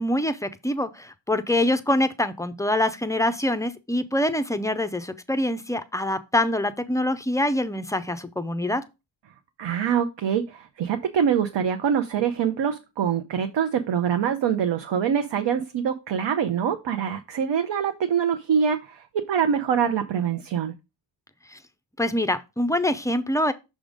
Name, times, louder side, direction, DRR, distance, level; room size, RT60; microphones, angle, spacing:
voice 1, 0.0-8.8 21.5-21.6 22.0-23.5, left 1 dB, 5° left, 0.4 m, -25 dB
voice 2, 9.6-20.7, right 7 dB, 60° right, 0.7 m, -24 dB
6.2 x 3.7 x 4.9 m
wide cardioid pair, 120°, 48 cm